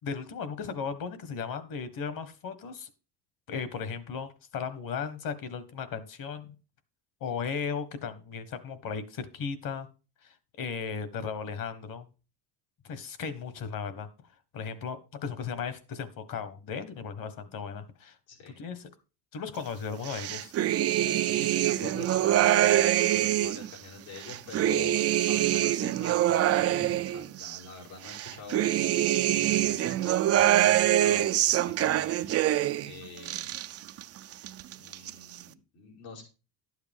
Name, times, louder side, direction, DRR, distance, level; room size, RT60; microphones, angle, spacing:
voice 1, 0.0-2.9 3.5-6.6 7.2-9.9 10.2-12.1 12.8-14.1 14.5-18.2 18.6-18.9 19.3-20.5, left 6 dB, 45° left, 12 dB, 1.5 m, -36 dB
sound 1, 20.1-23.7 24.2-27.6 28.1-32.9 33.2-34.0 34.3-35.1, right 13 dB, 35° right, 0.4 m, -25 dB
voice 2, 21.2-28.7 29.3-32.1 32.8-33.5 34.7-36.2, left 4 dB, 85° left, -3 dB, 5.2 m, -45 dB
11.5 x 8.1 x 3.6 m, 0.33 s
cardioid pair, 125°, 46 cm